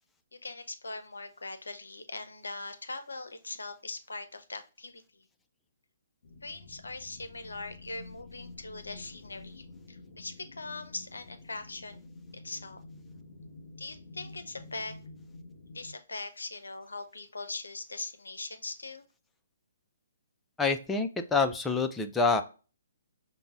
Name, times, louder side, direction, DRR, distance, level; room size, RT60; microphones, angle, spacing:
voice 1, 0.3-5.2 6.4-12.0 12.3-12.8 13.8-15.0 15.7-19.0, left 3 dB, 75° left, 9 dB, 0.5 m, -41 dB
sound 1, 6.2-15.9, left 3 dB, 55° left, 1.0 m, -49 dB
voice 2, 20.6-22.4, left 4 dB, 10° left, 7 dB, 0.3 m, -27 dB
5.2 x 2.1 x 2.4 m, 0.35 s
figure-of-eight pair, 130°, 0 cm